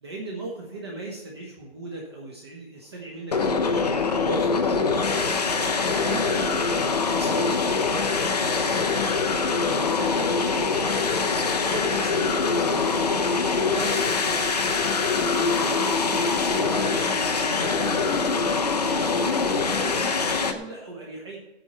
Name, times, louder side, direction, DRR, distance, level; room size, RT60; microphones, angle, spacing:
voice 1, 0.0-3.8 4.2-5.7 6.0-6.8 7.1-10.9 11.6-14.4 15.1-21.4, right 2 dB, 20° right, -2 dB, 1.1 m, -37 dB
sound 1, 3.3-20.5, left 4 dB, 35° left, 0.7 m, -24 dB
16.5 x 8.2 x 4.3 m, 1.0 s
hypercardioid pair, 175°, 35 cm